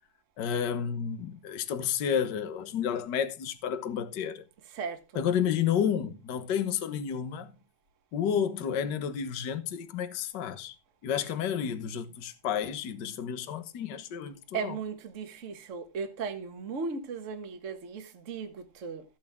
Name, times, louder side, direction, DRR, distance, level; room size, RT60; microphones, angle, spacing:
voice 1, 0.4-4.4 5.1-7.5 8.1-10.7 11.0-14.8, left 8 dB, 60° left, 1.1 m, -31 dB
voice 2, 4.7-5.2 14.5-19.0, right 5 dB, 40° right, 1.1 m, -36 dB
14.0 x 8.4 x 3.6 m
omnidirectional pair, 3.6 m